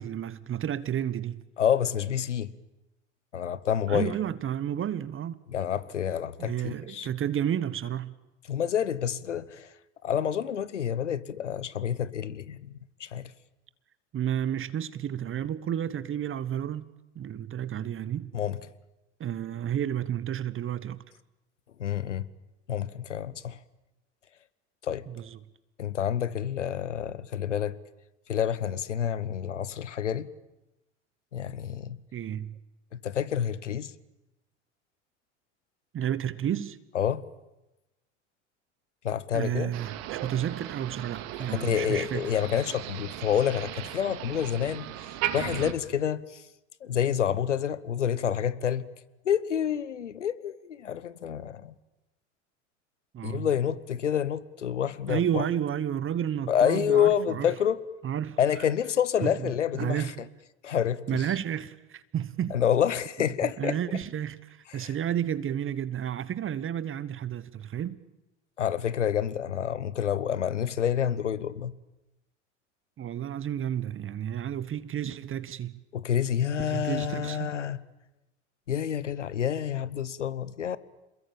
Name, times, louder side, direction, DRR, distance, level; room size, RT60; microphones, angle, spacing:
voice 1, 0.0-1.4 3.9-5.4 6.4-8.1 14.1-18.3 19.2-21.0 25.1-25.4 32.1-32.6 35.9-36.8 39.3-42.2 53.1-53.5 55.1-57.5 58.0-58.4 59.2-60.2 61.1-62.6 63.6-68.0 73.0-75.8 76.6-77.5, right 10 dB, 35° right, 1.2 m, -31 dB
voice 2, 1.6-2.5 3.3-4.1 5.5-7.1 8.5-9.7 10.0-12.7 13.0-13.3 18.3-18.6 21.8-22.3 22.7-23.6 24.8-25.0 25.8-27.7 28.3-30.3 31.3-32.0 33.0-33.9 36.9-37.2 39.0-39.7 41.5-44.9 45.3-46.4 46.8-48.9 49.2-51.7 53.2-55.4 56.5-57.8 58.4-60.1 60.6-61.2 62.5-63.8 64.7-64.9 68.6-71.7 75.9-77.8 78.7-80.8, left 9 dB, 90° left, 1.0 m, -28 dB
Motor vehicle (road), 39.7-45.7, right 12 dB, 65° right, 2.5 m, -37 dB
27.5 x 21.5 x 8.9 m
hypercardioid pair, 70°, 35 cm